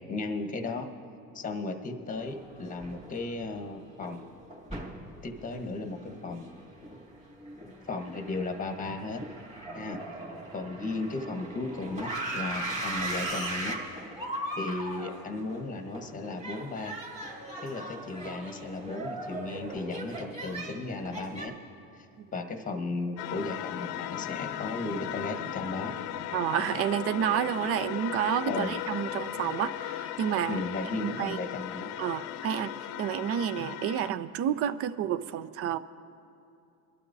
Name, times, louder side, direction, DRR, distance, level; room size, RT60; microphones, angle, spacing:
voice 1, 0.1-0.9 1.3-4.2 5.2-6.5 7.5-9.2 9.7-10.0 10.5-13.8 14.6-17.0 17.6-21.5 22.0-22.1 22.3-25.9 28.5-28.7 30.5-31.9, left 3 dB, 15° left, 5 dB, 1.1 m, -35 dB
sound 1, 2.2-21.5, right 1 dB, 10° right, 2.7 m, -39 dB
sound 2, 23.2-34.1, left 12 dB, 50° left, 0.7 m, -37 dB
voice 2, 26.3-30.6 31.0-31.4 32.0-32.7 33.0-35.8, right 10 dB, 35° right, 15 dB, 0.4 m, -30 dB
23.5 x 12.0 x 2.7 m, 2.7 s
supercardioid pair, 120°, 49 cm